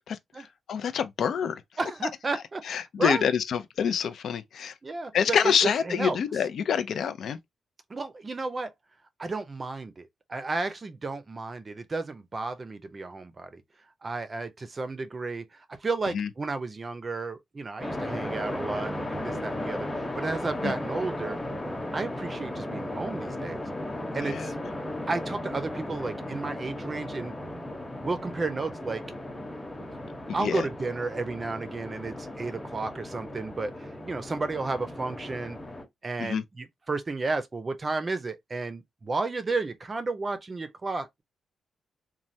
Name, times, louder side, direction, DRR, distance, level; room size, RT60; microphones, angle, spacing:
voice 1, 0.1-1.6 2.6-4.7 5.1-7.4 16.1-16.3 20.6-20.7 24.2-24.5 30.4-30.7 36.2-36.4, left 7 dB, 65° left, 0.4 m, -27 dB
voice 2, 1.8-3.3 4.8-5.5 5.9-6.2 7.9-8.7 9.2-13.6 14.0-21.4 21.9-23.6 24.1-24.5 25.1-27.3 28.0-29.0 30.3-35.6 36.0-41.2, right 3 dB, 30° right, 0.5 m, -32 dB
sound 1, 17.8-35.8, left 1 dB, 10° left, 0.9 m, -36 dB
3.2 x 2.2 x 2.6 m
cardioid pair, 115°, 0 cm